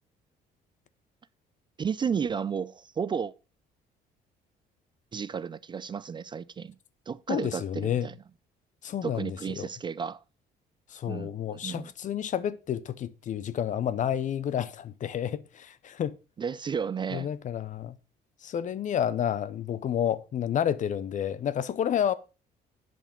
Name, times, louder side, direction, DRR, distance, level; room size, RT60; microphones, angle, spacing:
voice 1, 1.8-3.3 5.1-6.8 7.1-8.1 9.0-10.2 11.1-11.3 11.6-11.9 16.4-17.3, right 6 dB, 30° right, 0.4 m, -32 dB
voice 2, 7.3-8.1 8.8-9.7 10.9-16.2 17.1-18.0 18.4-22.1, left 9 dB, 45° left, 0.7 m, -30 dB
11.0 x 5.3 x 5.2 m
cardioid pair, 110°, 17 cm